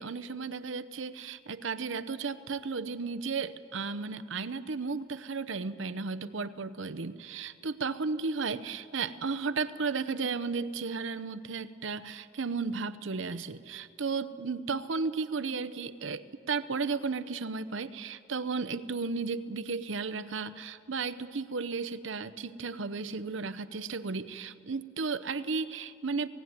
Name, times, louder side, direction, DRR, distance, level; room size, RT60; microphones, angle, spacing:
voice 1, 0.0-26.3, right 4 dB, 70° right, 12 dB, 0.8 m, -34 dB
18.5 x 17.0 x 9.5 m, 2.3 s
head